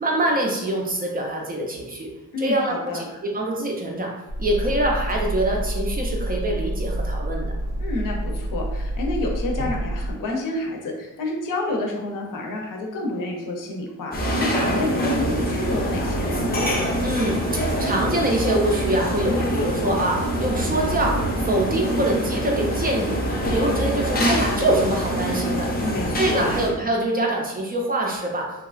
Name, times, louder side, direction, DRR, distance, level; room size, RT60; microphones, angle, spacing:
voice 1, 0.0-2.1 2.4-3.1 3.3-4.1 4.4-7.5 17.0-23.2 23.5-25.7 26.2-28.7, right 1 dB, 30° right, 0 dB, 0.4 m, -24 dB
voice 2, 2.3-3.0 7.8-16.5 25.8-26.5, left 2 dB, 70° left, 1 dB, 0.6 m, -29 dB
sound 1, 4.3-10.1, right 1 dB, 70° right, 0.6 m, -28 dB
sound 2, 14.1-26.7, equal, 30° left, 0.5 m, -24 dB
2.8 x 2.3 x 2.4 m, 1.0 s
wide cardioid pair, 135°, 33 cm